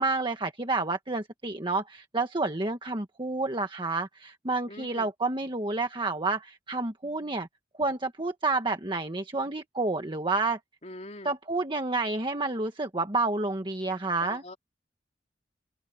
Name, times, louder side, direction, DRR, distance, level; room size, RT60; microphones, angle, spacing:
voice 1, 0.0-7.5 7.8-10.6 11.2-14.4, right 3 dB, 25° right, 1.6 m, -29 dB
voice 2, 4.7-5.1 10.8-11.3 14.2-14.6, left 2 dB, 40° left, 3.3 m, -43 dB
open air
head